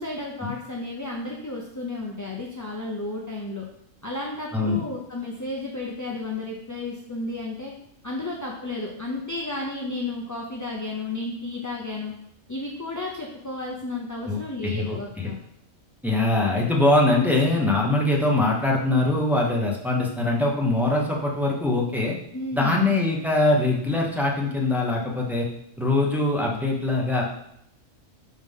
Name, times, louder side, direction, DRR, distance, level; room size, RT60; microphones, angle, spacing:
voice 1, 0.0-3.6 4.0-7.7 8.0-12.1 12.5-15.4 22.3-23.0, left 2 dB, 25° left, -2 dB, 0.4 m, -32 dB
voice 2, 14.2-15.3 16.0-22.1 22.5-25.5 25.8-27.2, left 2 dB, ahead, -3 dB, 0.8 m, -22 dB
4.9 x 3.7 x 5.4 m, 0.75 s
omnidirectional pair, 1.3 m